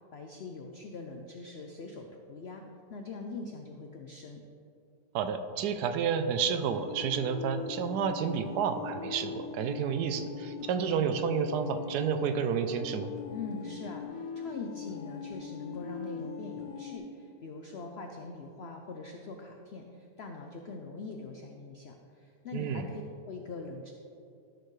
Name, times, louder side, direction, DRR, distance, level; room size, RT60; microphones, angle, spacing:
voice 1, 0.1-2.6 2.9-4.4 13.3-23.9, left 3 dB, 85° left, 3 dB, 0.5 m, -43 dB
voice 2, 5.1-13.1 22.5-22.9, right 7 dB, 75° right, 8 dB, 1.1 m, -30 dB
sound 1, 6.6-17.0, left 5 dB, 50° left, 2.5 m, -41 dB
13.0 x 6.6 x 3.2 m, 2.6 s
omnidirectional pair, 1.8 m